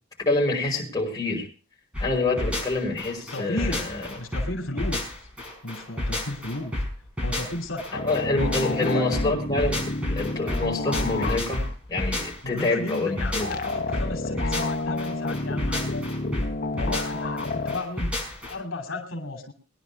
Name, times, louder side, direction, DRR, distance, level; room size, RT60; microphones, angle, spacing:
voice 1, 0.3-1.5 2.0-4.1 8.0-11.6 11.9-13.5, left 2 dB, 20° left, -2 dB, 5.4 m, -26 dB
sound 1, 1.9-18.5, left 1 dB, 5° right, 5.7 m, -30 dB
voice 2, 3.3-3.9 4.2-5.1 5.6-6.8 7.2-8.1 8.6-9.0 12.4-16.1 16.7-18.2 18.4-19.5, left 2 dB, 80° left, 1 dB, 2.8 m, -33 dB
sound 2, 7.9-11.7 13.4-17.8, left 2 dB, 50° left, 1.2 m, -30 dB
21.5 x 11.0 x 3.5 m, 0.32 s
head